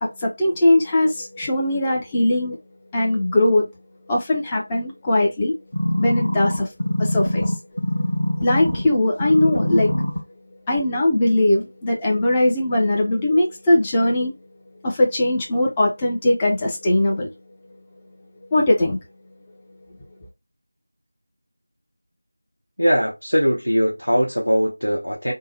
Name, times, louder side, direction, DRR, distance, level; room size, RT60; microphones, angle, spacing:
voice 1, 0.0-2.6 2.9-3.7 4.1-5.5 6.0-6.7 7.0-7.5 8.4-9.9 10.7-14.3 14.8-17.3 18.5-19.0, left 1 dB, 10° left, 0.6 m, -20 dB
sound 1, 5.7-8.9 9.2-10.2 10.8-10.9, left 1 dB, 35° left, 1.1 m, -23 dB
voice 2, 22.8-25.3, equal, 85° left, 0.9 m, -20 dB
3.5 x 2.1 x 3.2 m
figure-of-eight pair, 170°, 0 cm